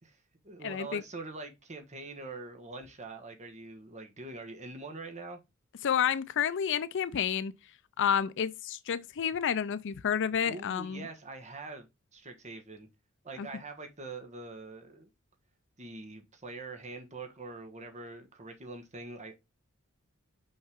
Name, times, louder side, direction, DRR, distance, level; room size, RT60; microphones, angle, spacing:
voice 1, 0.0-5.4 10.4-12.9 13.2-15.1 15.8-19.3, right 3 dB, 35° right, 1.4 m, -44 dB
voice 2, 0.6-1.0 5.8-7.5 8.0-11.1 13.4-13.5, left 8 dB, 60° left, 0.5 m, -30 dB
5.7 x 5.5 x 3.6 m
head